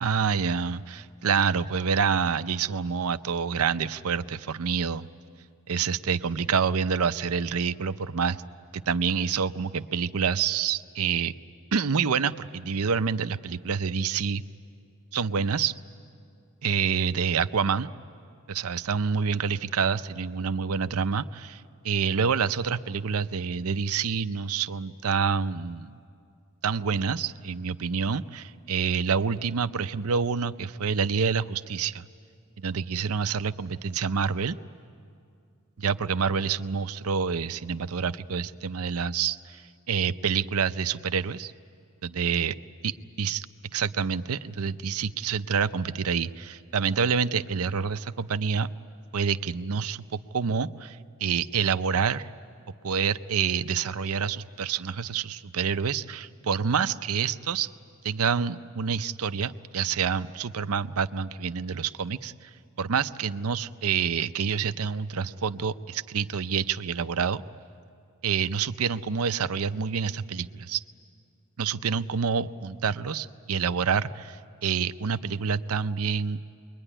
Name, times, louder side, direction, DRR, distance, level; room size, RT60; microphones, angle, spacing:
voice 1, 0.0-5.1 5.7-8.4 8.7-11.3 11.7-14.4 15.1-15.7 16.6-17.9 18.5-26.0 26.6-32.1 32.6-34.6 35.8-39.6 39.9-41.5 42.0-42.5 42.8-43.5 43.7-48.7 49.1-52.3 52.8-57.7 58.0-62.5 62.8-67.4 68.2-70.8 71.6-76.4, right 6 dB, 70° right, 12 dB, 0.6 m, -27 dB
26.0 x 22.5 x 10.0 m, 2.3 s
head